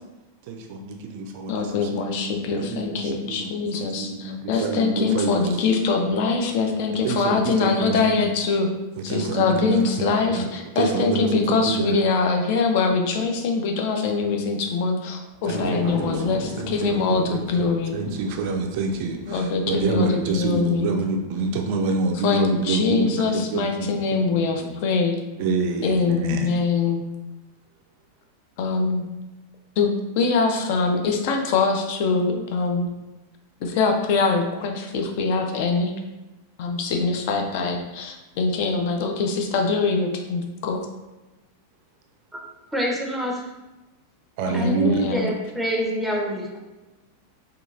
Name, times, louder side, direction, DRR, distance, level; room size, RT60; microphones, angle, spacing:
voice 1, 0.5-5.4 7.0-8.3 9.1-10.5 10.8-12.0 15.4-24.0 24.3-24.8 25.4-26.5 44.4-45.1, right 3 dB, 50° right, 2 dB, 0.3 m, -27 dB
voice 2, 1.5-8.7 9.0-18.0 19.2-21.0 22.2-25.2 25.8-27.1 28.6-29.1 29.8-32.9 33.6-35.9 36.6-40.9 44.5-45.3, left 4 dB, 50° left, 3 dB, 0.4 m, -23 dB
sound 1, 15.3-21.8 22.3-22.4, left 2 dB, 20° left, 0.9 m, -37 dB
voice 3, 42.7-43.5 44.5-46.6, equal, ahead, -2 dB, 0.6 m, -26 dB
2.8 x 2.3 x 2.5 m, 1.1 s
figure-of-eight pair, 90°, 0 cm